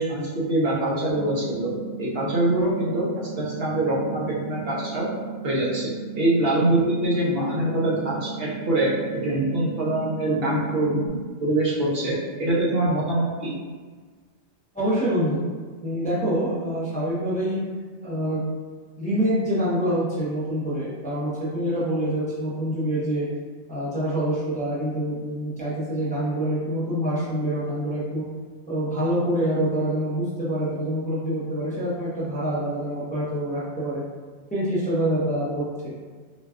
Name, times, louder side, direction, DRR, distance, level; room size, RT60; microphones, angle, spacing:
voice 1, 0.0-1.7 2.0-5.1 5.4-8.9 9.2-13.5, right 1 dB, 60° right, -6 dB, 0.9 m, -24 dB
sound 1, 1.1-11.1, right 6 dB, 40° left, 1.3 m, -36 dB
voice 2, 14.7-15.4 15.8-17.6 18.0-18.4 19.0-23.3 23.7-28.2 28.7-34.0 34.5-35.9, equal, 10° left, -10 dB, 0.7 m, -26 dB
3.9 x 2.3 x 2.4 m, 1.5 s
omnidirectional pair, 1.2 m